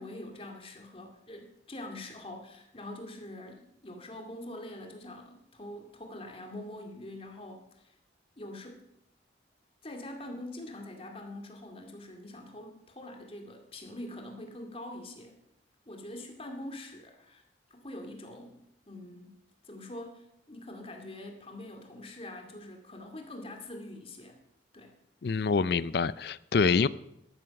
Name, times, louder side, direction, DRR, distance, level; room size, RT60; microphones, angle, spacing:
voice 1, 0.0-7.9 8.4-8.9 9.8-15.4 15.9-17.4 17.7-24.4 24.7-24.9, left 1 dB, 30° left, 3 dB, 2.4 m, -44 dB
voice 2, 25.2-26.9, left 5 dB, 60° left, 18 dB, 0.5 m, -26 dB
13.0 x 12.5 x 5.9 m, 0.81 s
head